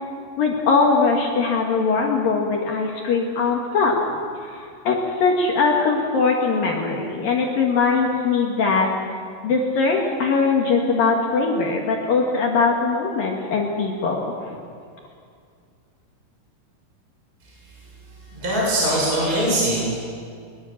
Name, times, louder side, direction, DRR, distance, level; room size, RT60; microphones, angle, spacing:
voice 1, 0.4-4.0 4.5-8.9 9.4-14.6, left 4 dB, 55° left, 0 dB, 2.8 m, -21 dB
voice 2, 18.2-20.0, right 1 dB, 15° right, -6 dB, 7.1 m, -22 dB
22.5 x 21.5 x 7.3 m, 2.2 s
omnidirectional pair, 6.0 m